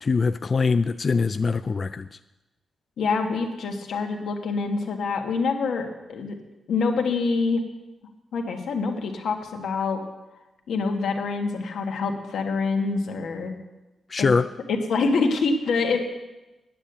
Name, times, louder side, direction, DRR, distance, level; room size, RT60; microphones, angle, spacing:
voice 1, 0.0-2.2 14.1-14.5, left 4 dB, 40° left, 11 dB, 0.3 m, -23 dB
voice 2, 3.0-6.4 6.7-7.6 8.3-10.0 10.7-13.5 14.2-14.3 14.7-16.0, left 4 dB, 85° left, 3 dB, 1.7 m, -25 dB
9.8 x 8.7 x 8.1 m, 1.1 s
wide cardioid pair, 120°, 0 cm